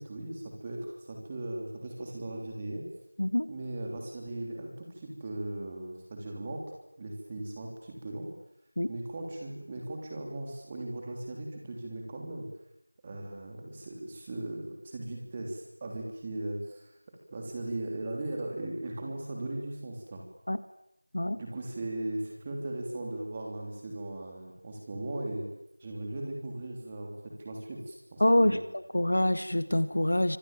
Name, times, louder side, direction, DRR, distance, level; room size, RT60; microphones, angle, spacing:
voice 1, 0.0-2.9 3.5-6.6 7.0-8.3 8.9-12.5 13.0-16.9 17.3-20.2 21.4-25.5 25.8-28.6, right 1 dB, 10° right, 0 dB, 3.2 m, -38 dB
voice 2, 3.2-3.5 8.8-8.9 20.5-20.6 21.1-21.4 28.2-30.4, left 1 dB, 50° left, 12 dB, 1.8 m, -26 dB
25.5 x 25.0 x 9.0 m, 0.82 s
figure-of-eight pair, 175°, 0 cm